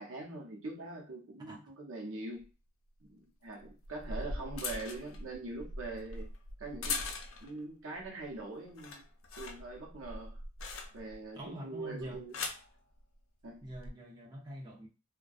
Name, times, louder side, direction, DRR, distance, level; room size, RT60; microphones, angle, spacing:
voice 1, 0.0-2.5 3.1-6.3 6.6-7.1 7.4-9.1 9.4-10.4 10.9-12.4 13.4-13.6, right 2 dB, 85° right, 0.7 m, -43 dB
sound 1, 2.4-2.5 3.6-7.6 8.0-8.4 8.7-11.3 12.0-12.7 13.6-13.9, left 3 dB, 90° left, 0.5 m, -41 dB
voice 2, 11.3-12.2 13.6-14.9, equal, 20° right, 0.6 m, -45 dB
2.5 x 2.2 x 2.4 m
head